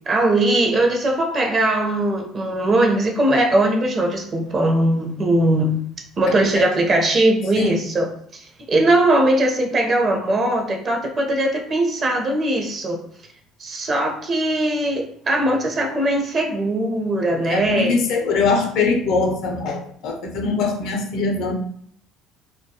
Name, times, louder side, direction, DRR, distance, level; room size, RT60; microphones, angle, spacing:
voice 1, 0.1-5.8 6.2-13.0 13.6-18.0, right 1 dB, 40° right, 2 dB, 0.6 m, -20 dB
voice 2, 17.5-21.5, left 4 dB, 65° left, 3 dB, 0.5 m, -22 dB
2.2 x 2.1 x 2.7 m, 0.62 s
supercardioid pair, 80°, 0 cm